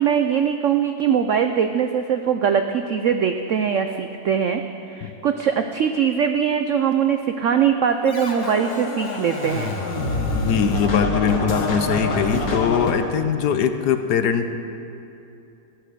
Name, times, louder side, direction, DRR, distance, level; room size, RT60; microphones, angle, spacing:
voice 1, 0.0-4.6 4.9-9.7, right 7 dB, 75° right, 7 dB, 0.7 m, -21 dB
Scratching (performance technique), 8.1-12.9, left 2 dB, 85° left, 2.3 m, -26 dB
voice 2, 10.3-14.5, left 7 dB, 70° left, 9 dB, 1.3 m, -21 dB
14.0 x 11.0 x 6.7 m, 2.7 s
omnidirectional pair, 1.9 m